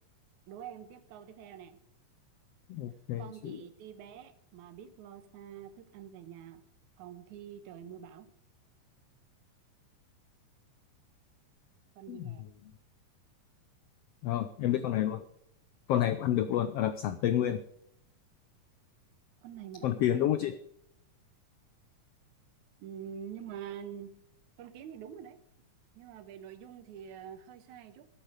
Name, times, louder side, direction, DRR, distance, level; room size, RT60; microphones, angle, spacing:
voice 1, 0.5-1.8 3.2-6.6 7.0-8.3 11.9-12.5 19.4-20.4 22.8-24.2 24.6-25.4 26.0-28.1, right 9 dB, 70° right, 11 dB, 2.4 m, -46 dB
voice 2, 2.7-3.6 12.1-12.3 14.2-15.2 15.9-17.6 19.8-20.5, left 11 dB, 85° left, 11 dB, 1.3 m, -29 dB
13.5 x 10.5 x 5.0 m, 0.73 s
omnidirectional pair, 3.6 m